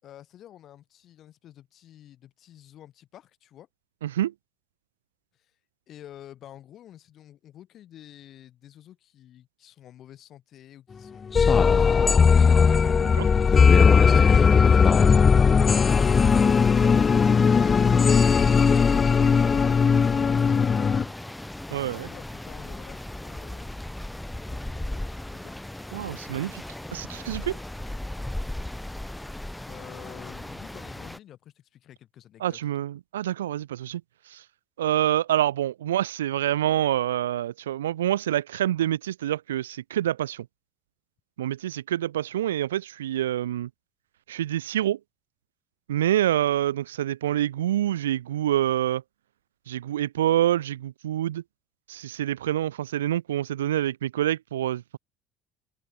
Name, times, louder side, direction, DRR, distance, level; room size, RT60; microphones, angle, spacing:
voice 1, 0.0-3.7 5.3-11.5 11.7-16.2 16.7-19.8 20.1-23.7 24.3-25.5 29.7-32.6, left 11 dB, 50° left, 5.0 m, -49 dB
voice 2, 4.0-4.3 13.0-13.3 21.7-22.1 25.9-26.6 26.9-27.6 32.4-34.0 34.3-34.4 34.8-40.5 41.4-43.7 44.3-45.0 45.9-49.0 49.7-51.4 51.9-55.0, right 12 dB, 75° right, 0.3 m, -26 dB
sound 1, 11.3-21.0, left 6 dB, 30° left, 0.4 m, -18 dB
sound 2, 15.9-31.2, left 1 dB, 5° left, 4.5 m, -37 dB
open air
figure-of-eight pair, 60°, 0 cm